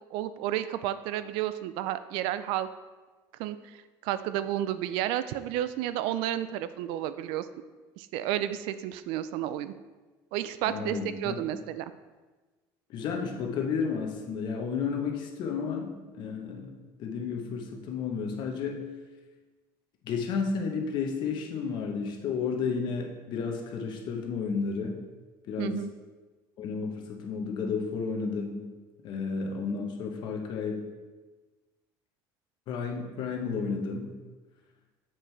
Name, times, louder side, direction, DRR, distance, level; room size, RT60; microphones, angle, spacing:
voice 1, 0.1-2.7 3.4-7.5 8.0-9.7 10.3-11.9 25.6-25.9, right 12 dB, 80° right, 13 dB, 0.4 m, -31 dB
voice 2, 10.7-11.3 12.9-18.9 20.0-25.1 25.5-25.9 26.6-28.7 29.0-30.9 32.7-34.2, left 5 dB, 60° left, 2 dB, 1.0 m, -32 dB
7.3 x 4.5 x 3.3 m, 1.3 s
cardioid pair, 120°, 9 cm